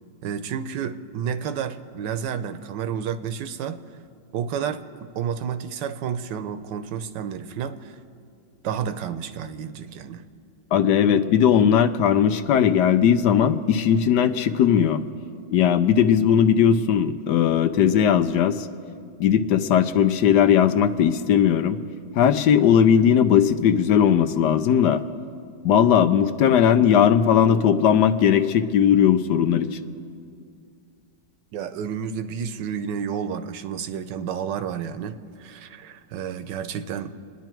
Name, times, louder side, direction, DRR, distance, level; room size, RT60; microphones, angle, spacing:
voice 1, 0.2-3.8 4.3-8.0 8.6-10.2 31.5-37.2, right 7 dB, 80° right, 10 dB, 1.4 m, -30 dB
voice 2, 10.7-15.0 15.5-18.6 19.2-21.8 22.2-25.0 25.6-29.7, left 8 dB, 75° left, 10 dB, 1.2 m, -18 dB
28.5 x 10.0 x 4.5 m, 2.3 s
omnidirectional pair, 1.9 m